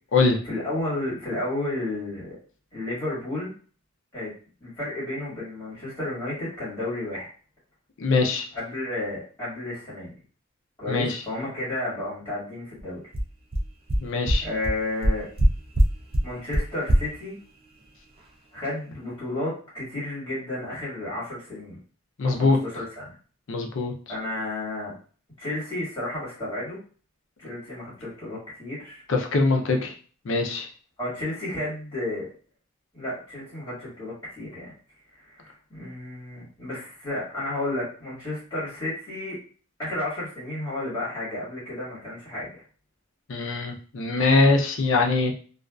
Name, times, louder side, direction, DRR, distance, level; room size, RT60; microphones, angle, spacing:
voice 1, 0.4-2.4 2.7-3.5 4.1-4.3 4.6-7.3 8.5-10.1 10.8-13.0 14.4-15.3 16.2-17.4 18.5-21.8 22.2-23.1 24.1-24.9 25.4-26.8 27.4-29.0 31.0-32.3 32.9-34.7 35.1-39.4 39.8-42.5, left 1 dB, 10° left, -9 dB, 1.4 m, -32 dB
voice 2, 8.0-8.4 10.9-11.2 14.0-14.5 22.2-22.6 23.5-23.9 29.1-29.9 30.3-30.7 43.3-45.3, left 3 dB, 55° left, 3 dB, 0.4 m, -22 dB
sound 1, 12.8-12.9 13.1-13.2 13.5-13.6 13.9-14.0 14.3-14.4 14.6-14.7 15.0-15.5 15.7-15.9 16.1-16.2 16.5-16.6 16.9-17.0, right 1 dB, 25° right, 0.3 m, -19 dB
2.4 x 2.3 x 2.2 m, 0.41 s
head